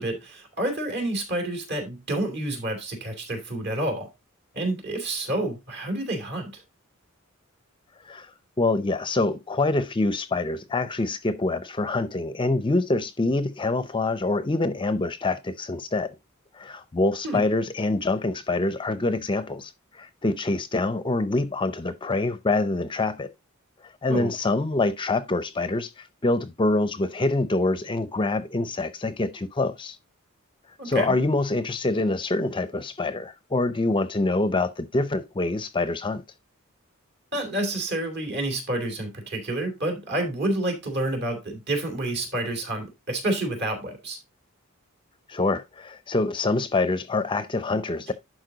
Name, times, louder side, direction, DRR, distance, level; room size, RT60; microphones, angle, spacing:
voice 1, 0.0-4.1 4.5-6.6 17.2-17.4 24.1-24.3 30.8-31.1 37.3-44.2, right 1 dB, 55° right, 3.2 m, -29 dB
voice 2, 8.6-16.1 16.5-23.3 23.8-30.0 30.8-36.2 45.3-48.1, left 2 dB, 25° left, 0.5 m, -25 dB
11.5 x 4.4 x 3.8 m
head